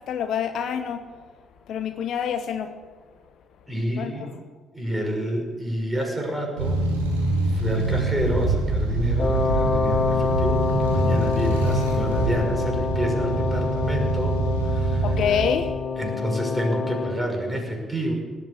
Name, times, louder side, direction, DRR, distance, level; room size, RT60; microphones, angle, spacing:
voice 1, 0.1-1.0 1.7-2.7 4.0-4.1 15.0-15.7, left 8 dB, 60° left, 8 dB, 1.0 m, -26 dB
voice 2, 3.7-4.3 4.7-6.8 7.5-14.4 14.6-15.1 16.0-18.1, equal, 10° right, 1 dB, 6.0 m, -28 dB
sound 1, 6.6-15.7, right 2 dB, 85° right, 2.6 m, -25 dB
Wind instrument woodwind instrument, 9.2-17.2, left 5 dB, 40° left, 1.7 m, -27 dB
18.0 x 8.5 x 8.3 m, 1.4 s
hypercardioid pair, 45°, 0 cm